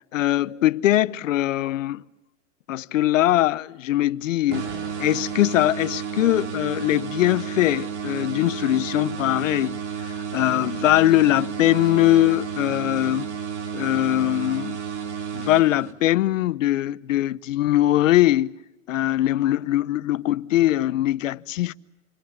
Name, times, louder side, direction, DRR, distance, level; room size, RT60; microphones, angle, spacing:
voice 1, 0.1-2.0 2.7-13.3 13.7-14.8 15.3-18.6 18.9-21.7, left 14 dB, 85° left, 0.9 m, -21 dB
sound 1, 4.5-16.2, right 7 dB, 60° right, 3.8 m, -32 dB
29.0 x 25.0 x 7.3 m
supercardioid pair, 170°, 38 cm